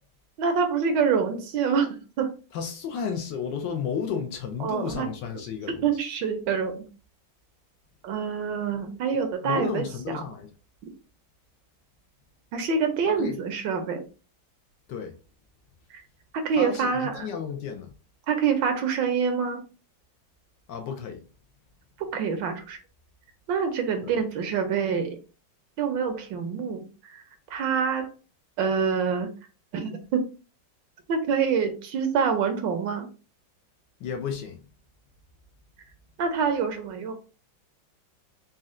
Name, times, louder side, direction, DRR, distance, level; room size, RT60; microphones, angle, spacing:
voice 1, 0.4-2.3 4.6-5.1 5.8-6.8 8.0-9.9 12.5-14.0 15.9-16.0 16.3-17.3 18.3-19.6 22.0-22.8 23.5-25.2 25.8-27.2 27.5-28.1 28.6-29.3 29.7-30.2 31.1-33.1 36.2-37.1, right 6 dB, 70° right, 1.3 m, -26 dB
voice 2, 2.5-5.8 9.4-10.5 13.1-13.4 14.9-15.1 16.6-17.9 20.7-21.2 24.0-24.1 34.0-34.6, left 7 dB, 75° left, 1.2 m, -32 dB
4.2 x 2.3 x 3.6 m
omnidirectional pair, 2.2 m